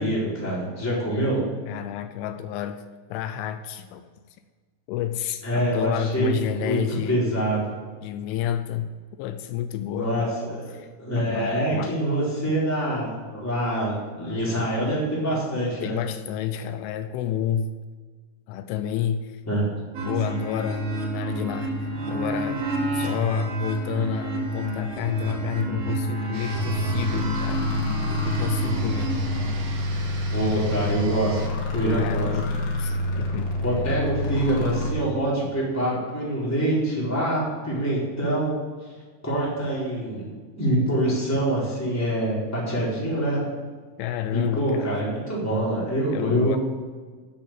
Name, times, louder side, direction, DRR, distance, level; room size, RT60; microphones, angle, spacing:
voice 1, 0.0-1.4 5.4-6.8 7.1-7.6 9.9-16.0 19.5-19.6 30.3-31.4 31.7-32.3 33.6-38.6 39.2-40.3 40.6-43.4 44.3-46.6, right 1 dB, 5° left, -6 dB, 3.5 m, -25 dB
voice 2, 1.7-2.8 3.1-4.1 4.9-7.2 8.0-10.3 10.7-10.9 11.2-11.9 15.8-17.7 18.5-19.4 20.1-22.7 22.9-27.7 28.2-29.2 32.0-33.6 44.0-44.9 46.1-46.6, left 9 dB, 85° left, 10 dB, 3.1 m, -30 dB
sound 1, 20.0-29.7, right 1 dB, 90° right, 5.5 m, -29 dB
sound 2, 26.3-31.5, right 4 dB, 65° right, 3.5 m, -42 dB
sound 3, 26.5-34.9, left 1 dB, 65° left, 4.1 m, -27 dB
10.0 x 8.7 x 9.0 m, 1.5 s
omnidirectional pair, 5.6 m